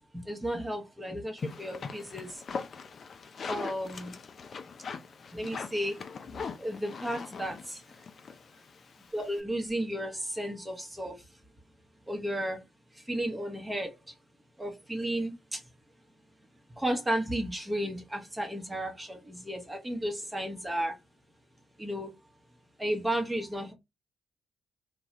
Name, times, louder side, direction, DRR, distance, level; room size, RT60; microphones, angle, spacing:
voice 1, 0.1-2.3 3.5-4.2 5.3-5.9 6.6-7.8 9.1-11.2 12.1-12.6 13.1-13.9 14.6-15.6 16.8-20.9 21.8-22.1 22.8-23.7, right 1 dB, 15° right, 0.8 m, -33 dB
sound 1, 1.4-9.4, left 5 dB, 50° left, 0.4 m, -41 dB
2.6 x 2.3 x 3.1 m
cardioid pair, 90°, 0 cm